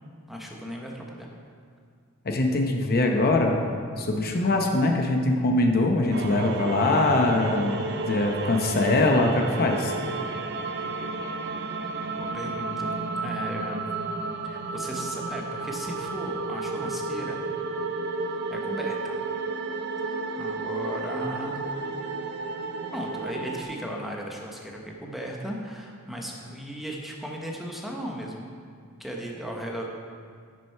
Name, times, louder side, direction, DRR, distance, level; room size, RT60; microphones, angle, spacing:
voice 1, 0.3-1.3 12.2-12.9 13.2-13.8 14.4-17.4 18.3-19.2 20.1-21.6 22.9-28.5 29.0-29.9, equal, ahead, -1 dB, 0.9 m, -36 dB
voice 2, 2.2-3.6 4.0-7.8 8.1-9.9, left 2 dB, 45° left, 2 dB, 0.8 m, -22 dB
sound 1, 6.1-23.6, right 3 dB, 50° right, 0.6 m, -32 dB
10.0 x 6.3 x 4.5 m, 2.1 s
head